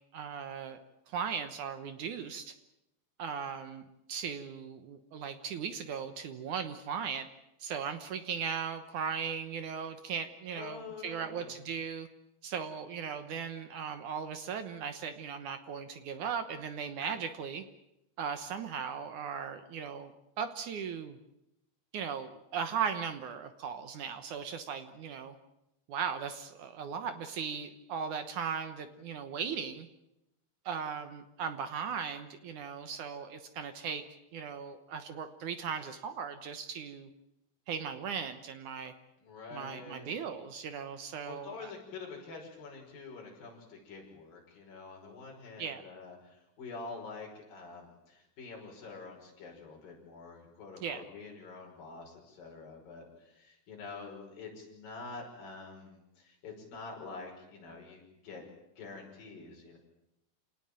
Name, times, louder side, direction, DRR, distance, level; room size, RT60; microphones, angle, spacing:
voice 1, 0.1-0.8 1.1-2.5 3.2-7.3 7.6-12.1 12.4-17.6 18.2-21.2 21.9-25.4 25.9-29.9 30.7-34.0 34.3-37.1 37.7-38.9 39.5-41.7 45.6-45.8 50.8-51.0, right 7 dB, 65° right, 9 dB, 2.2 m, -38 dB
voice 2, 10.5-11.5 39.2-40.1 41.3-58.4 58.8-59.8, left 4 dB, 60° left, 0 dB, 7.3 m, -47 dB
27.5 x 18.5 x 8.9 m, 0.90 s
omnidirectional pair, 4.6 m